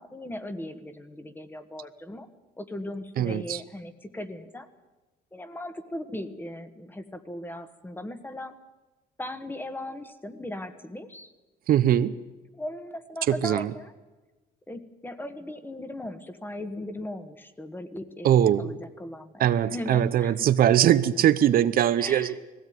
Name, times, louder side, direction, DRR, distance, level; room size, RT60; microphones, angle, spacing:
voice 1, 0.0-2.3 2.6-4.7 5.3-8.6 9.2-11.3 12.5-13.9 14.7-20.8 22.0-22.4, left 1 dB, 10° left, 10 dB, 1.5 m, -38 dB
voice 2, 3.2-3.6 11.7-12.2 13.3-13.7 18.2-18.7 19.4-22.4, right 10 dB, 60° right, 12 dB, 0.8 m, -21 dB
19.5 x 16.5 x 9.4 m, 1.2 s
cardioid pair, 110°, 17 cm